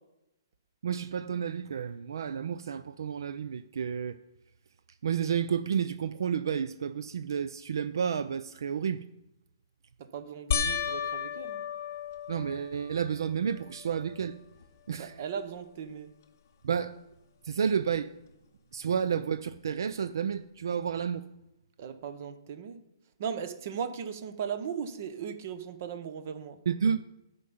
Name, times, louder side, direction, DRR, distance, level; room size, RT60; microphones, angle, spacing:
voice 1, 0.8-4.2 5.0-9.0 12.3-14.4 14.9-15.1 16.6-17.0 17.4-18.1 18.7-21.3 26.7-27.0, right 7 dB, 60° right, 0.4 m, -31 dB
voice 2, 10.1-11.6 15.0-16.1 21.8-22.8 23.2-26.6, right 7 dB, 30° right, 0.8 m, -37 dB
sound 1, 10.5-13.1 13.7-14.3 14.6-14.7 17.9-18.0, left 7 dB, 40° left, 0.6 m, -33 dB
10.0 x 5.3 x 7.1 m
hypercardioid pair, 180°, 2 cm